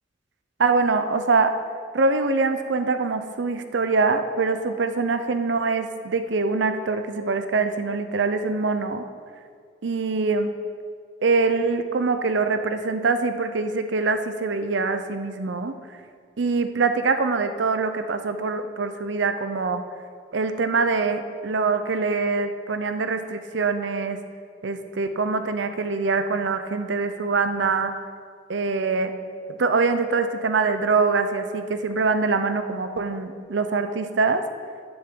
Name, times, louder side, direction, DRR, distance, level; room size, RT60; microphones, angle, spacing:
voice 1, 0.6-1.5 1.9-9.0 9.8-10.5 11.2-15.7 16.4-19.8 20.3-24.2 24.6-27.9 28.5-29.2 29.5-34.4, right 4 dB, 80° right, 9 dB, 0.6 m, -24 dB
11.0 x 9.6 x 3.8 m, 2.1 s
head